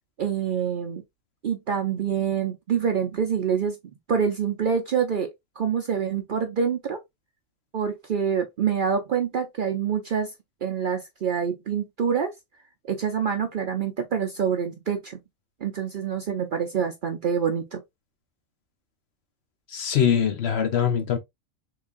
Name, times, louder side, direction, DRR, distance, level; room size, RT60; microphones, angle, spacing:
voice 1, 0.2-1.0 1.4-3.8 4.1-5.3 5.6-7.0 7.7-10.3 10.6-12.3 12.9-15.2 15.6-17.8, right 7 dB, 55° right, 0.6 m, -26 dB
voice 2, 19.7-21.2, left 8 dB, 60° left, 1.0 m, -23 dB
3.7 x 3.2 x 2.4 m
omnidirectional pair, 1.3 m